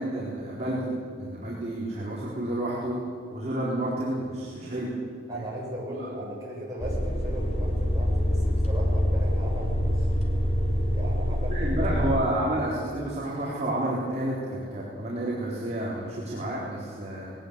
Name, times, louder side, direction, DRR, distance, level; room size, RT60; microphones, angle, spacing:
voice 1, 0.0-3.0 3.3-4.9 5.3-5.4 5.9-6.1 11.5-17.3, right 1 dB, 30° right, -7 dB, 4.1 m, -30 dB
voice 2, 5.3-10.1 10.9-11.7, right 1 dB, 15° right, -4 dB, 6.8 m, -37 dB
sound 1, 6.8-12.2, equal, 30° left, 3.2 m, -25 dB
21.0 x 18.5 x 8.3 m, 2.3 s
head